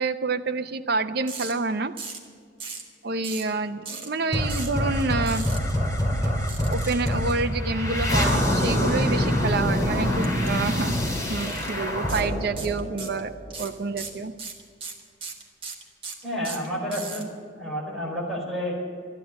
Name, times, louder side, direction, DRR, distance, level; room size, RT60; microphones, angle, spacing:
voice 1, 0.0-1.9 3.0-5.5 6.2-10.9 11.3-13.3 13.6-14.3, right 3 dB, 55° right, 7 dB, 0.6 m, -28 dB
sound 1, 1.3-1.5 2.0-2.3 2.6-2.9 3.2-3.5 3.8-4.1 4.5-4.7 5.3-5.6 6.5-7.1 10.2-10.5 10.8-10.9 11.4-11.7 12.1-12.2 12.6-13.2 13.5-17.2, right 5 dB, 30° right, 1.8 m, -37 dB
sound 2, 4.3-13.6, equal, 15° left, 2.3 m, -25 dB
voice 2, 16.2-17.2 17.5-18.7, equal, ahead, -5 dB, 4.6 m, -30 dB
13.0 x 11.0 x 9.6 m, 2.1 s
head